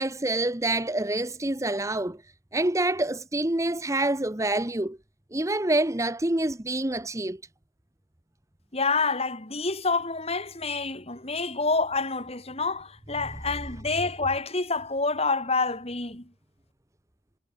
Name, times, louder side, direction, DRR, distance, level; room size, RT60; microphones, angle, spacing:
voice 1, 0.0-2.2 2.5-5.0 5.3-7.4, right 2 dB, 15° right, 1.0 m, -27 dB
voice 2, 8.7-16.3, left 3 dB, 30° left, 4.2 m, -28 dB
head